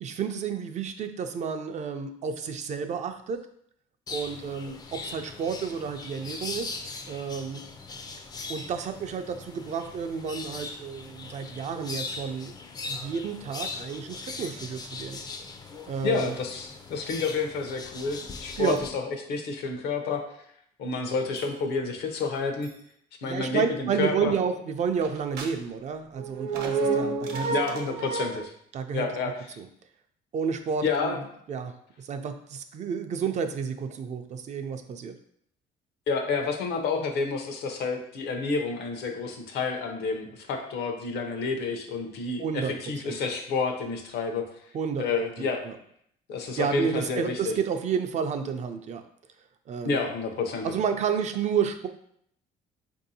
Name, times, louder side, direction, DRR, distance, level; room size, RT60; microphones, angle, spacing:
voice 1, 0.0-3.4 4.1-6.8 7.1-7.6 8.5-12.6 12.9-15.2 15.9-16.3 18.6-18.8 23.2-27.5 28.7-29.1 29.6-29.7 30.3-31.2 31.5-35.1 42.4-42.7 43.0-43.2 44.7-45.0 45.4-45.7 46.6-49.0 49.7-50.0 50.6-51.9, right 6 dB, 45° right, 7 dB, 0.4 m, -31 dB
sound 1, 4.1-18.9, left 4 dB, 25° left, 0.4 m, -40 dB
voice 2, 16.0-19.0 19.3-20.2 20.8-22.7 23.2-24.3 27.4-28.5 28.9-29.6 30.8-31.2 36.1-44.4 45.0-45.6 46.3-47.5 49.9-50.7, left 4 dB, 75° left, 4 dB, 0.7 m, -29 dB
sound 2, 21.4-21.5 22.6-22.7 25.0-25.5 26.1-28.5, right 4 dB, 70° right, 0.8 m, -29 dB
4.5 x 2.7 x 2.7 m, 0.69 s
cardioid pair, 110°, 17 cm